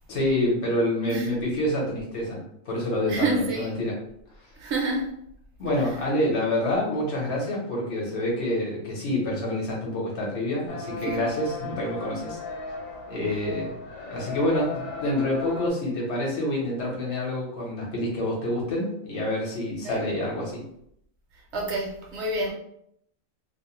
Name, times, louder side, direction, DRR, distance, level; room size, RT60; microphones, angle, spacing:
voice 1, 0.1-2.4 2.7-3.9 5.6-12.4 13.1-13.8 14.1-20.6, left 1 dB, 60° left, 1.1 m, -27 dB
voice 2, 3.1-3.7 4.6-5.1 11.1-11.2 19.8-20.1 21.5-22.5, right 2 dB, 65° right, 0.8 m, -28 dB
sound 1, 10.7-15.7, left 3 dB, 90° left, 1.0 m, -36 dB
2.5 x 2.0 x 2.9 m
omnidirectional pair, 1.4 m